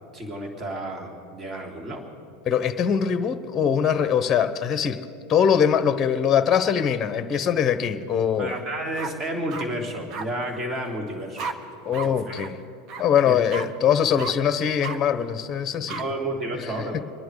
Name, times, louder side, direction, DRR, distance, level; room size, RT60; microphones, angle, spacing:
voice 1, 0.1-2.0 8.4-11.5 11.9-12.3 13.3-13.4 16.0-17.0, right 1 dB, 30° right, 1 dB, 2.7 m, -31 dB
voice 2, 2.4-5.0 5.3-8.5 11.8-12.6 13.0-16.0 16.5-16.7 16.9-17.0, left 8 dB, 30° left, 10 dB, 0.9 m, -22 dB
sound 1, 8.5-8.6 9.0-9.7 10.1-10.3 11.4-11.5 11.9-12.1 12.3-12.5 12.9-13.0 13.5-13.7 14.2-14.3 14.8-15.0 15.9-16.0, right 5 dB, 45° right, 1.3 m, -33 dB
26.5 x 10.5 x 4.8 m, 2.6 s
hypercardioid pair, 90°, 0 cm